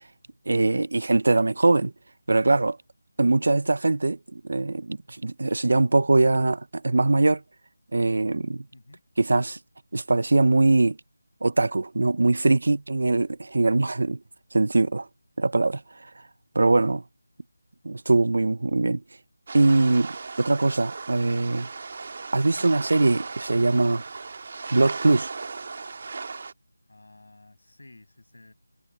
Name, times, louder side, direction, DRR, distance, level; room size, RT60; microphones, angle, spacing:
voice 1, 0.5-1.9 2.3-2.8 3.2-7.4 7.9-8.6 9.2-9.6 9.9-11.0 11.4-14.2 14.5-15.0 15.4-15.8 16.6-17.0 17.8-19.0 19.5-21.7 22.3-24.0 24.7-25.3, right 2 dB, 60° right, 0.5 m, -22 dB
voice 2, 8.7-9.0 14.9-15.0 16.6-16.9 22.4-22.7 26.9-28.5, left 2 dB, 75° left, 6.6 m, -52 dB
sound 1, 19.5-26.5, right 4 dB, 40° right, 1.6 m, -37 dB
figure-of-eight pair, 170°, 0 cm